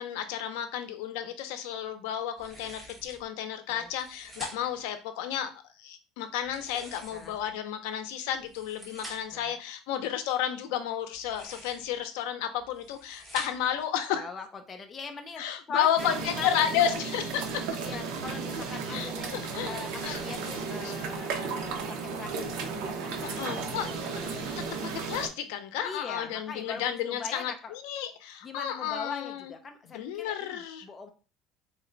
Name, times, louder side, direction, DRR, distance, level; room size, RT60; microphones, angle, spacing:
voice 1, 0.0-5.5 5.8-14.3 15.4-17.5 18.9-19.7 20.0-20.2 20.8-21.0 21.6-21.7 23.2-23.9 24.9-29.5 29.9-30.9, left 10 dB, 85° left, 9 dB, 0.6 m, -32 dB
sound 1, 2.4-3.3 3.8-4.8 6.4-7.5 8.3-9.4 11.1-12.0 12.6-13.8, equal, 5° right, 1.0 m, -47 dB
voice 2, 14.1-16.6 17.8-19.3 19.6-22.3 22.6-24.6 25.8-27.8 28.4-31.1, left 5 dB, 20° left, 5 dB, 0.4 m, -41 dB
sound 2, 16.0-25.3, right 5 dB, 65° right, 0.7 m, -34 dB
3.8 x 2.2 x 3.8 m, 0.34 s
cardioid pair, 170°, 0 cm